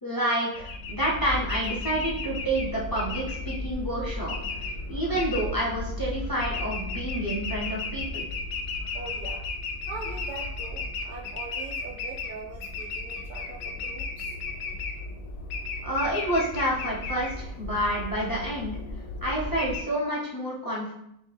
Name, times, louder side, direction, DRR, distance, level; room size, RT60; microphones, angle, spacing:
voice 1, 0.0-4.3 4.9-8.3 15.8-18.8 19.2-20.9, right 1 dB, 25° left, -5 dB, 0.5 m, -29 dB
sound 1, 0.5-19.8, left 3 dB, 80° left, 1.0 m, -34 dB
voice 2, 8.9-9.5 9.9-14.3, right 4 dB, 80° right, -2 dB, 0.4 m, -41 dB
5.2 x 2.1 x 3.3 m, 0.78 s
omnidirectional pair, 1.4 m